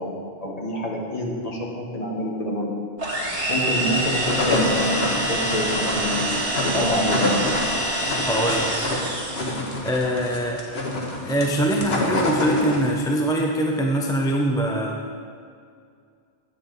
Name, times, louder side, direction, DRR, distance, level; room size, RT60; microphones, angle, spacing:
voice 1, 0.0-2.8 3.5-6.4 6.7-7.6, equal, 40° left, -2 dB, 1.6 m, -27 dB
sound 1, 3.0-9.7, right 1 dB, 70° right, 1.9 m, -26 dB
sound 2, 4.0-13.1, left 1 dB, 80° left, 1.5 m, -27 dB
voice 2, 8.3-8.7 9.8-10.6 11.2-15.0, equal, 5° left, 0 dB, 0.6 m, -23 dB
10.0 x 8.4 x 4.0 m, 2.2 s
omnidirectional pair, 1.0 m